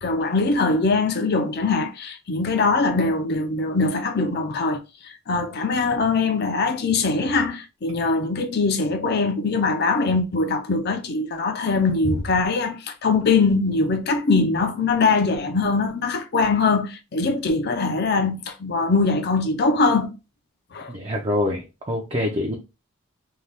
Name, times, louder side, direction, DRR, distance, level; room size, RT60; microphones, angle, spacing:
voice 1, 0.0-4.8 5.3-20.1 20.7-20.9, left 3 dB, 50° left, 0.5 m, -22 dB
voice 2, 20.9-22.5, left 1 dB, 25° right, 0.5 m, -25 dB
2.7 x 2.3 x 3.3 m
head